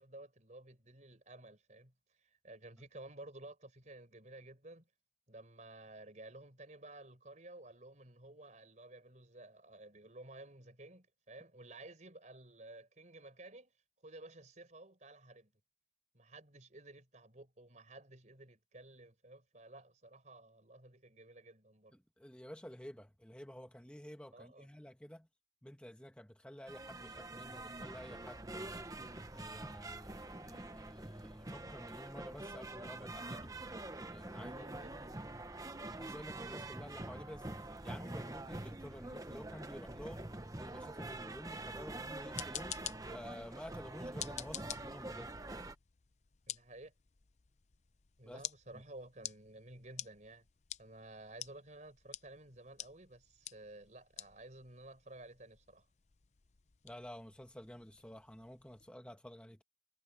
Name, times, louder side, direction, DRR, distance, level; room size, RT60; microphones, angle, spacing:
voice 1, 0.0-1.9 2.2-4.9 5.3-13.7 14.0-15.5 16.1-21.9 24.3-24.7 34.2-35.0 46.5-46.9 48.2-50.5 50.8-55.9, right 2 dB, 40° right, 4.6 m, -54 dB
voice 2, 22.2-25.3 25.6-28.9 29.3-33.5 34.1-34.8 35.9-42.8 43.1-45.3 48.2-48.4 48.7-48.8 56.8-59.6, equal, 5° left, 1.2 m, -51 dB
sound 1, 26.7-45.7, right 2 dB, 20° right, 1.0 m, -46 dB
sound 2, 42.1-58.9, left 11 dB, 40° left, 0.6 m, -50 dB
head